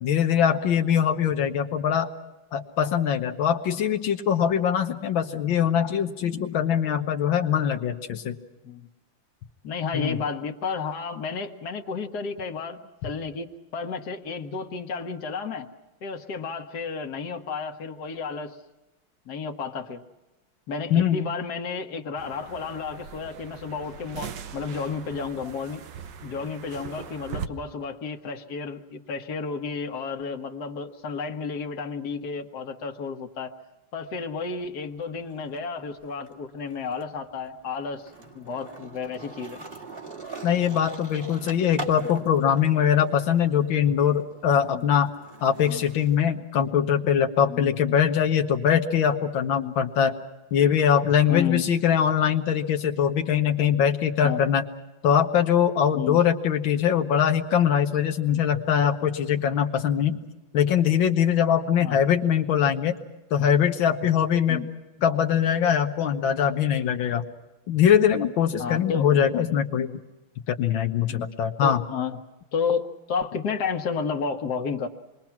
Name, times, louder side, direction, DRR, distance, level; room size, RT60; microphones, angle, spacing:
voice 1, 0.0-2.1 2.5-8.4 9.9-10.2 20.9-21.3 40.4-45.1 45.4-50.1 50.5-54.7 55.0-60.2 60.5-63.0 63.3-64.6 65.0-67.2 67.7-70.0 70.5-71.8, left 8 dB, 85° left, 5 dB, 1.8 m, -22 dB
voice 2, 9.6-13.5 13.7-15.7 16.0-18.6 19.3-20.0 20.7-25.8 26.2-33.5 33.9-39.6 44.7-44.9 45.7-45.8 47.5-47.7 49.6-49.7 51.3-51.6 54.2-54.4 55.9-56.2 58.3-58.4 61.8-62.0 64.5-64.7 68.6-69.1 69.4-69.5 71.1-71.3 71.6-72.2 72.5-74.9, left 5 dB, 55° left, 4 dB, 1.9 m, -32 dB
sound 1, 22.2-27.5, right 7 dB, 70° right, 1.6 m, -40 dB
Skateboard, 34.0-35.6 35.9-46.2, right 2 dB, 30° right, 2.5 m, -43 dB
27.0 x 22.0 x 5.9 m, 1.1 s
omnidirectional pair, 2.1 m